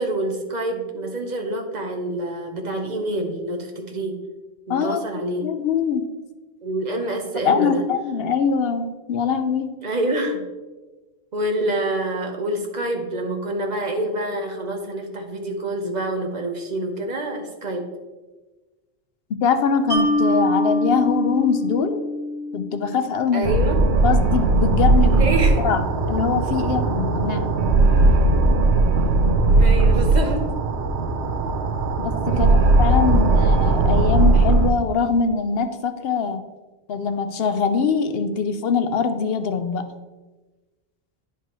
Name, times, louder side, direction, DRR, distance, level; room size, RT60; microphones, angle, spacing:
voice 1, 0.0-4.2 4.7-5.5 6.6-7.8 9.8-10.4 11.3-17.8 23.3-23.8 25.2-25.7 29.5-30.4 32.3-32.8, right 1 dB, 45° right, 3 dB, 1.0 m, -27 dB
voice 2, 5.4-6.0 7.4-9.7 19.4-22.0 22.5-23.5 24.0-25.3 25.6-27.5 32.0-32.5 32.8-36.4 36.9-39.9, left 6 dB, 70° left, 9 dB, 0.8 m, -23 dB
Mallet percussion, 19.9-23.2, equal, 20° right, 1.8 m, -24 dB
sound 1, 23.4-34.7, right 2 dB, 90° right, 0.9 m, -18 dB
10.0 x 4.7 x 3.0 m, 1.2 s
omnidirectional pair, 1.1 m